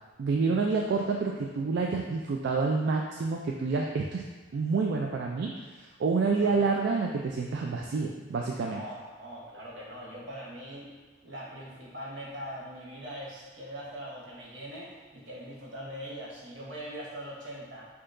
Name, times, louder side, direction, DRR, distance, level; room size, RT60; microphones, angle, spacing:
voice 1, 0.2-4.2 4.5-8.8, right 4 dB, 65° right, 0 dB, 0.3 m, -28 dB
voice 2, 6.3-6.7 8.6-10.9 11.2-17.9, equal, 85° right, -5 dB, 1.2 m, -42 dB
6.4 x 2.8 x 2.5 m, 1.3 s
head